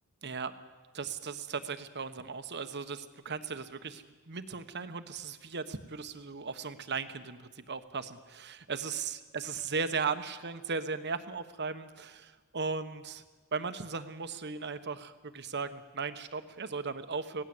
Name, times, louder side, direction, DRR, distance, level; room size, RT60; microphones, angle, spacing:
voice 1, 0.2-0.5 0.9-13.2 13.5-17.4, right 5 dB, 50° right, 10 dB, 1.3 m, -37 dB
25.5 x 17.5 x 8.0 m, 1.4 s
head